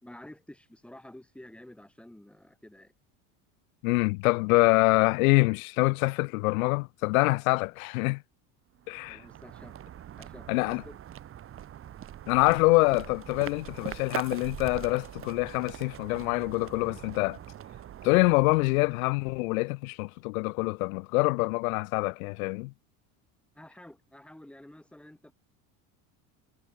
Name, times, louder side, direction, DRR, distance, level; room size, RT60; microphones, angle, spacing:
voice 1, 0.0-2.9 9.1-9.8 10.2-11.0 23.5-25.3, left 1 dB, 5° left, 2.8 m, -50 dB
voice 2, 3.8-8.2 8.9-9.2 10.5-10.8 12.3-17.4 18.0-22.7, left 26 dB, 90° left, 0.7 m, -25 dB
sound 1, 8.7-19.5, right 11 dB, 30° right, 1.4 m, -43 dB
supercardioid pair, 130°, 41 cm